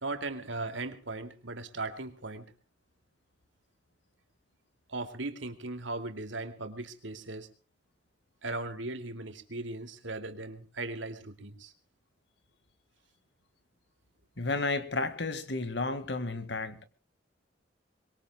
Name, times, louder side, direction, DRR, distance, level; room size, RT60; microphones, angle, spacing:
voice 1, 0.0-2.5 4.9-7.5 8.4-11.7, right 2 dB, 85° right, 7 dB, 2.5 m, -38 dB
voice 2, 14.4-16.9, left 3 dB, 65° left, 11 dB, 2.0 m, -32 dB
24.5 x 22.0 x 2.3 m, 0.35 s
head